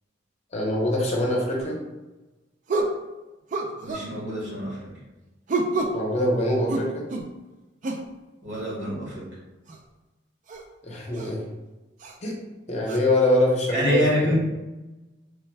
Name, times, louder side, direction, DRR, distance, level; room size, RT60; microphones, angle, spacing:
voice 1, 0.5-1.8 5.9-7.0 10.8-11.4 12.2-12.4 12.7-14.3, left 1 dB, 35° left, -1 dB, 0.7 m, -24 dB
sound 1, 1.6-1.8 2.7-3.0 3.5-4.1 5.5-6.0 6.7-7.3 7.8-8.1 9.7-9.8 10.5-10.6 11.1-11.3 12.0-12.2 12.9-13.0, right 2 dB, 45° right, 0.3 m, -28 dB
voice 2, 3.8-4.9 8.4-9.3 13.7-14.3, equal, 70° right, -5 dB, 1.2 m, -26 dB
3.4 x 2.1 x 3.2 m, 1.1 s
head